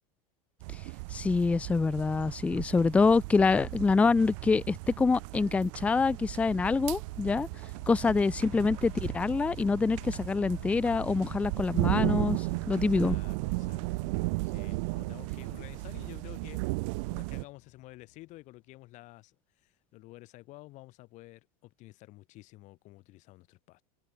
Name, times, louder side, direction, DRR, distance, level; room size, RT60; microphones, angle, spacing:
sound 1, 0.6-17.4, right 28 dB, 55° right, 0.7 m, -35 dB
voice 1, 1.1-7.5 7.9-13.2, left 4 dB, 5° left, 0.5 m, -26 dB
sound 2, 6.0-18.6, left 19 dB, 70° left, 4.1 m, -53 dB
voice 2, 12.7-23.8, left 19 dB, 40° left, 5.7 m, -52 dB
supercardioid pair, 160°, 19 cm